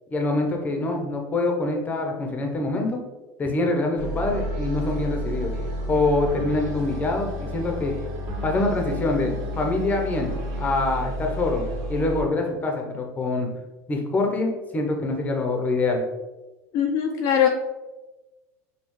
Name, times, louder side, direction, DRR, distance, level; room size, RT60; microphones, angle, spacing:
voice 1, 0.1-3.0 3.4-5.5 5.9-7.9 8.4-11.6 11.9-13.5 13.9-16.0, left 2 dB, 20° left, 2 dB, 0.8 m, -25 dB
sound 1, 4.0-12.2, equal, 50° right, 1.4 m, -31 dB
voice 2, 16.7-17.5, left 9 dB, 50° left, 1 dB, 0.5 m, -21 dB
5.5 x 2.3 x 3.1 m, 1.1 s
supercardioid pair, 125°, 8 cm